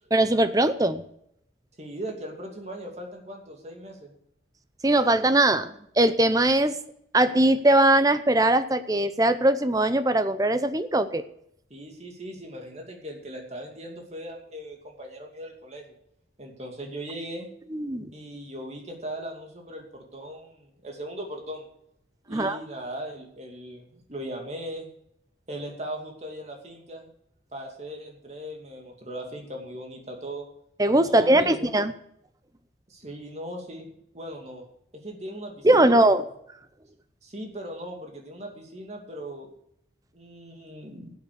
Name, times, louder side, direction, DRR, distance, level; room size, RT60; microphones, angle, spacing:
voice 1, 0.1-1.0 4.8-6.8 7.1-11.2 17.7-18.1 22.3-22.6 30.8-31.9 35.6-36.2, right 1 dB, 20° right, 12 dB, 0.7 m, -21 dB
voice 2, 1.8-4.1 11.7-15.9 16.4-17.5 18.1-21.7 22.3-24.9 25.5-27.1 27.5-30.4 31.0-31.7 32.9-34.7 34.9-35.9 37.2-39.5 40.1-41.1, right 1 dB, 35° right, 2 dB, 2.5 m, -39 dB
12.0 x 8.1 x 6.7 m, 0.73 s
head